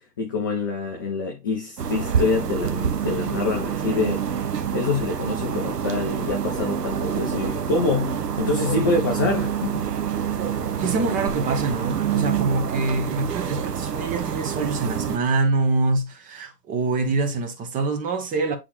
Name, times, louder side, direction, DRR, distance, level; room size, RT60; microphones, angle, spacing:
voice 1, 0.0-4.2 4.7-9.9, left 3 dB, 15° left, 0.4 m, -26 dB
sound 1, 1.8-15.2, right 8 dB, 80° right, 1.0 m, -27 dB
voice 2, 10.8-18.6, right 3 dB, 15° right, 1.0 m, -25 dB
8.3 x 3.9 x 3.2 m
figure-of-eight pair, 120°, 47 cm